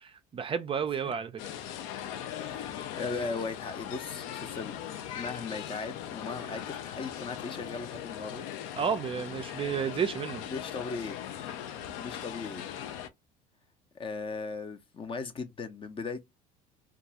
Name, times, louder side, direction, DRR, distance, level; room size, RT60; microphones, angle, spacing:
voice 1, 0.3-1.3 8.8-10.4, right 7 dB, 30° right, 0.4 m, -31 dB
sound 1, 1.4-13.1, left 10 dB, 75° left, 0.5 m, -39 dB
voice 2, 2.4-4.8 5.1-8.5 10.5-11.2 12.0-12.6 13.9-16.2, left 4 dB, 30° left, 0.5 m, -38 dB
2.3 x 2.3 x 2.7 m
supercardioid pair, 90°, 18 cm